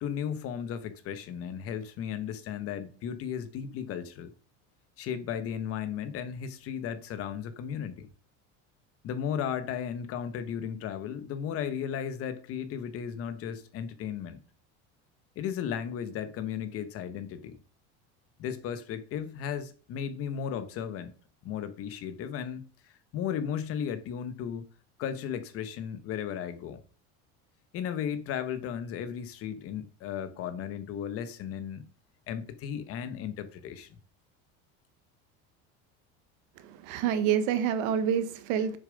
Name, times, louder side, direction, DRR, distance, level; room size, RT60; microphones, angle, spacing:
voice 1, 0.0-4.3 5.0-8.1 9.0-14.4 15.4-17.6 18.4-21.1 21.4-22.7 23.1-24.7 25.0-26.8 27.7-31.8 32.3-33.9, left 8 dB, 45° left, 1.1 m, -35 dB
voice 2, 36.6-38.8, right 8 dB, 70° right, 1.3 m, -27 dB
7.2 x 6.9 x 5.2 m
cardioid pair, 155°, 32 cm